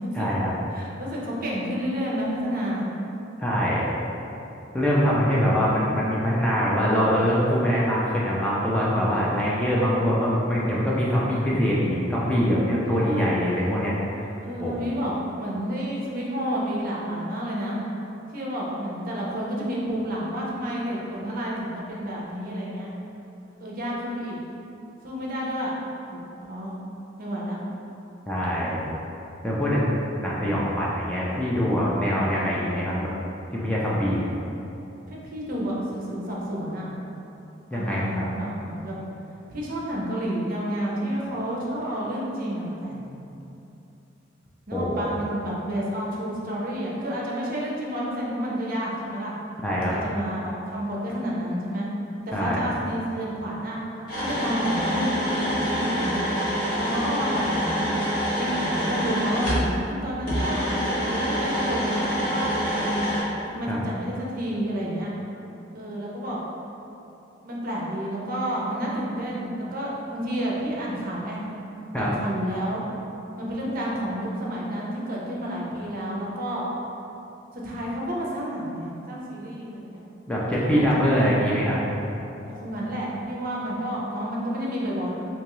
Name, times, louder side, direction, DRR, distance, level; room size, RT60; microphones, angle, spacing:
voice 1, 0.2-0.5 3.4-3.8 4.7-14.3 14.6-14.7 28.3-28.8 29.4-29.9 30.1-33.1 33.5-34.2 37.7-38.3 44.7-45.0 49.6-49.9 52.3-52.6 63.7-63.8 71.9-72.1 80.3-81.8, equal, 5° left, -7 dB, 0.4 m, -23 dB
voice 2, 0.7-2.9 12.9-13.3 14.4-17.8 18.3-22.9 23.6-24.4 25.0-25.7 26.1-26.7 27.2-27.6 35.1-36.9 37.7-39.0 39.5-43.1 44.7-49.3 49.8-51.9 52.3-53.8 54.1-56.3 56.8-58.0 58.4-63.0 63.5-65.1 65.7-66.4 67.4-71.4 71.9-72.8 73.3-76.6 77.5-80.0 80.5-81.5 82.5-85.1, equal, 50° right, -4 dB, 0.6 m, -30 dB
sound 1, 54.1-59.7 60.3-63.2, equal, 50° left, 1.2 m, -26 dB
3.5 x 2.9 x 3.0 m, 2.9 s
head